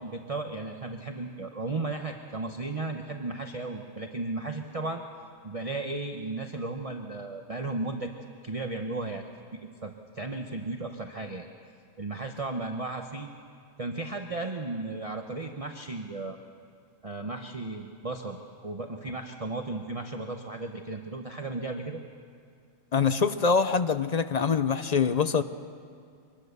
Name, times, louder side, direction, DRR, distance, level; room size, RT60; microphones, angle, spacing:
voice 1, 0.0-5.0 5.4-8.1 8.4-11.5 12.0-13.3 13.8-16.4 17.0-22.0, right 2 dB, 30° right, 4 dB, 0.9 m, -35 dB
voice 2, 22.9-25.4, left 5 dB, 45° left, 11 dB, 0.6 m, -24 dB
24.5 x 20.5 x 6.8 m, 2.3 s
omnidirectional pair, 1.3 m